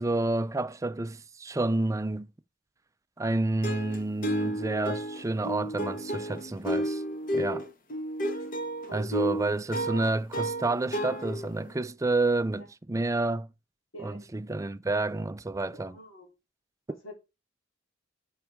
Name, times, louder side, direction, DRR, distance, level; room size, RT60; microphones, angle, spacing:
voice 1, 0.0-2.3 3.2-7.0 7.3-7.6 8.9-13.5 14.0-16.0, right 2 dB, 15° right, 0.4 m, -29 dB
sound 1, 3.6-11.7, equal, 45° left, 1.1 m, -32 dB
voice 2, 13.9-14.3 15.7-16.3 17.0-17.2, right 2 dB, 80° left, 3.4 m, -43 dB
9.2 x 6.4 x 3.6 m
head